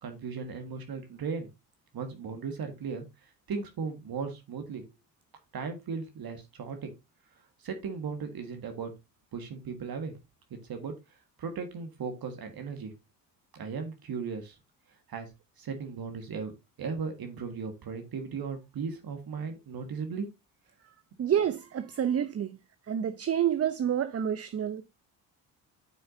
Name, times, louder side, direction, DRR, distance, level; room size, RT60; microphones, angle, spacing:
voice 1, 0.0-1.5 1.9-4.8 5.5-6.9 7.6-8.9 9.3-10.1 10.7-10.9 11.4-12.9 13.5-14.6 15.1-15.3 15.6-16.5 16.8-20.3, right 5 dB, 50° right, 1.7 m, -36 dB
voice 2, 21.2-22.6 22.9-24.8, right 9 dB, 30° right, 0.7 m, -28 dB
9.1 x 6.4 x 2.7 m
hypercardioid pair, 50°, 47 cm